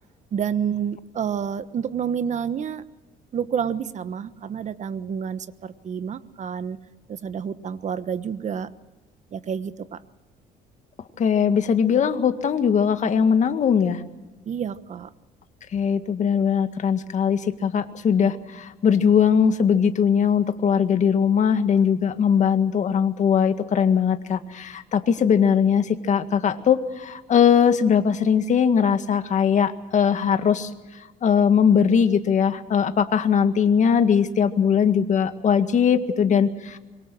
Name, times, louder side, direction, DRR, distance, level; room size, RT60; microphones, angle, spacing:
voice 1, 0.3-2.8 3.3-6.8 7.1-8.7 9.3-10.0 14.5-15.1, right 7 dB, 45° right, 13 dB, 1.2 m, -29 dB
voice 2, 11.2-14.0 15.7-30.7 31.2-36.8, left 7 dB, 45° left, 8 dB, 1.9 m, -20 dB
25.5 x 23.0 x 6.3 m, 1.1 s
cardioid pair, 110°, 17 cm